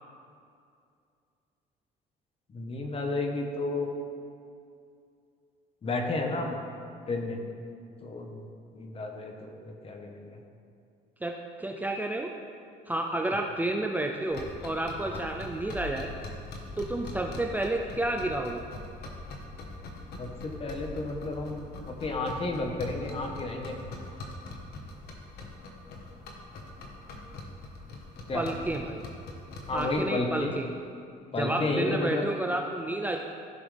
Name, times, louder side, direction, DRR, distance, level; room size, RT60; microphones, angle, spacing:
voice 1, 2.5-3.9 5.8-6.6 7.1-7.4 8.0-8.5 8.7-10.3 15.1-15.2 20.2-21.6 21.9-24.0 28.3-28.4 29.7-30.5 31.3-32.2, left 2 dB, 35° left, 2 dB, 1.3 m, -32 dB
voice 2, 11.6-12.3 12.9-16.1 16.8-18.6 28.3-29.0 29.7-30.7 31.4-33.2, right 1 dB, 10° right, 1 dB, 0.6 m, -30 dB
sound 1, 14.3-30.0, left 2 dB, 70° left, 1.5 m, -42 dB
15.0 x 6.1 x 3.5 m, 2.4 s
cardioid pair, 110°, 17 cm